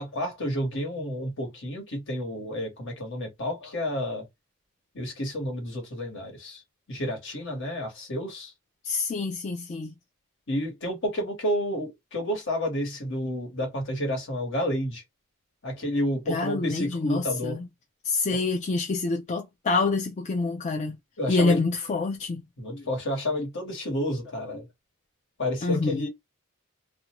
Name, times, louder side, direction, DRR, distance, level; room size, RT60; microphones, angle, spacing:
voice 1, 0.0-4.2 4.9-6.6 6.9-8.5 10.5-15.0 15.6-17.6 18.3-18.4 21.2-21.6 22.6-24.7 25.4-26.1, equal, 60° left, 1.2 m, -30 dB
voice 2, 8.8-9.9 16.3-17.7 18.0-21.0 21.3-22.4 25.6-26.1, left 3 dB, 35° left, 0.3 m, -27 dB
2.4 x 2.2 x 2.9 m
head